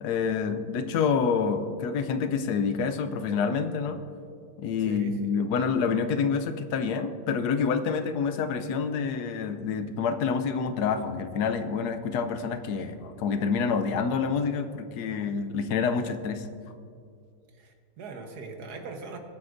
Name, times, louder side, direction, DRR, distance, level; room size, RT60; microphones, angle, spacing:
voice 1, 0.0-4.0 4.6-16.5, left 5 dB, 90° left, 9 dB, 1.3 m, -27 dB
voice 2, 4.8-5.5 17.6-19.2, right 4 dB, 85° right, 4 dB, 1.6 m, -41 dB
19.5 x 7.8 x 2.6 m, 2.3 s
omnidirectional pair, 1.7 m